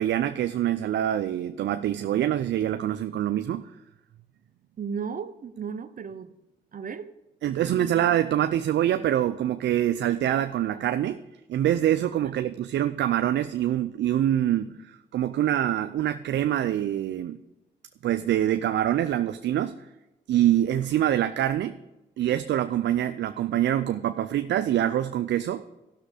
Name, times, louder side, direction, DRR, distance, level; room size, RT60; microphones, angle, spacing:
voice 1, 0.0-3.7 7.4-11.2 11.5-17.4 18.0-19.7 20.3-21.7 22.2-25.6, right 11 dB, 75° right, 0.4 m, -25 dB
voice 2, 4.8-6.3 6.7-7.1 12.0-12.3, right 6 dB, 45° right, 0.7 m, -36 dB
13.5 x 6.2 x 5.0 m
supercardioid pair, 55°, 19 cm